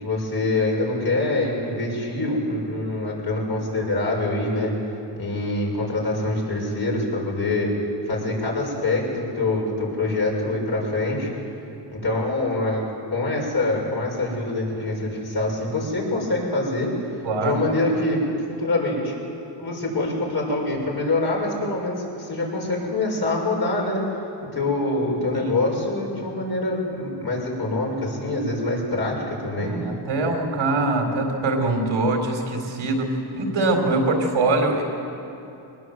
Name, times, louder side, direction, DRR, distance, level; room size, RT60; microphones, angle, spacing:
voice 1, 0.0-4.7 5.2-7.7 8.1-11.3 11.9-12.8 13.1-16.9 17.4-18.2 18.6-19.1 19.6-24.0 24.4-29.7, left 2 dB, 50° left, -2 dB, 6.6 m, -25 dB
voice 2, 17.2-17.6 25.3-25.5 29.6-34.8, right 2 dB, 85° right, 2 dB, 4.0 m, -23 dB
22.5 x 19.5 x 7.9 m, 2.7 s
cardioid pair, 95°, 47 cm